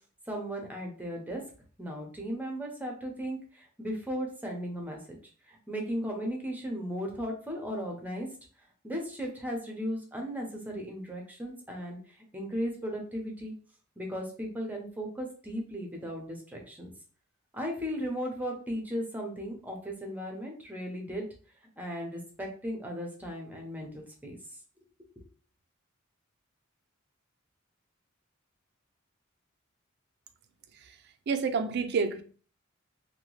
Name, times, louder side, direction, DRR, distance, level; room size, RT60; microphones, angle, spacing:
voice 1, 0.3-1.4 1.8-5.0 5.5-8.3 8.8-12.0 12.3-13.5 14.0-16.9 17.5-21.3 21.8-24.4 25.2-25.3, equal, 10° right, 0.7 m, -36 dB
voice 2, 31.3-32.2, right 5 dB, 55° right, 0.4 m, -28 dB
2.8 x 2.2 x 3.1 m
head